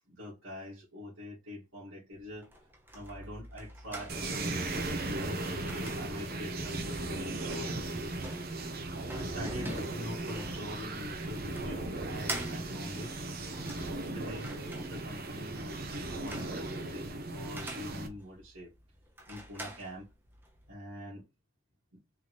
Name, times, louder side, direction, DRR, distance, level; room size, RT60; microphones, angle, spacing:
voice 1, 0.1-2.5 2.9-5.4 5.7-7.8 9.1-13.1 14.1-18.7 19.3-20.1 20.7-21.3, left 1 dB, 80° right, 2.0 m, -44 dB
sound 1, 2.1-20.7, right 1 dB, 10° right, 0.8 m, -47 dB
sound 2, 4.1-18.1, right 2 dB, 45° right, 0.8 m, -37 dB
3.9 x 3.5 x 3.1 m
head